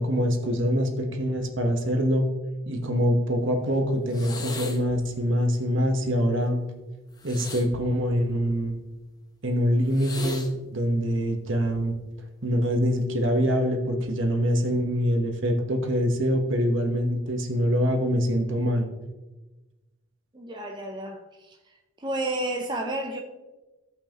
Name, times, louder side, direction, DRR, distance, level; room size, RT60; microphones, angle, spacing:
voice 1, 0.0-2.3 2.7-6.7 7.2-8.8 9.4-11.9 12.4-18.9, equal, 60° right, 4 dB, 1.3 m, -24 dB
sound 1, 4.1-5.0 7.2-8.7 9.9-10.5 11.6-11.9, left 2 dB, 20° left, 0.8 m, -38 dB
voice 2, 20.3-21.6 22.0-23.2, right 1 dB, 20° right, 1 dB, 0.6 m, -31 dB
16.0 x 5.6 x 3.0 m, 1.1 s
head